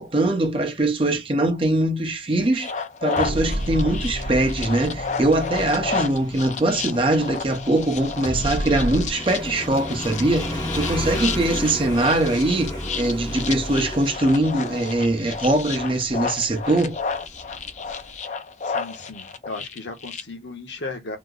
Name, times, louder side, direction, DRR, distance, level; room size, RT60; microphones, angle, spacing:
voice 1, 0.0-2.7 3.0-17.0, right 2 dB, 30° right, 0.7 m, -22 dB
sound 1, 2.5-20.2, left 5 dB, 40° left, 0.4 m, -32 dB
sound 2, 3.2-9.1, equal, 75° right, 0.8 m, -31 dB
Motorcycle, 3.8-18.1, left 1 dB, 20° left, 0.8 m, -34 dB
voice 2, 18.7-21.2, left 3 dB, 90° left, 0.9 m, -36 dB
2.9 x 2.0 x 3.7 m
head